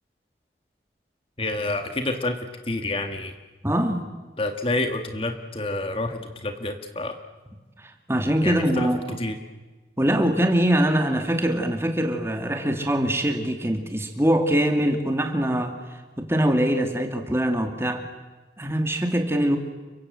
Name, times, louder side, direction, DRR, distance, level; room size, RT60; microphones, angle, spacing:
voice 1, 1.4-2.4 2.7-3.3 4.4-7.2 8.4-8.9 9.2-9.4, left 2 dB, 30° left, 6 dB, 1.7 m, -28 dB
voice 2, 3.6-4.0 7.8-9.2 10.0-18.0 18.6-19.6, right 1 dB, 15° right, 5 dB, 2.5 m, -23 dB
30.0 x 24.5 x 7.8 m, 1.3 s
head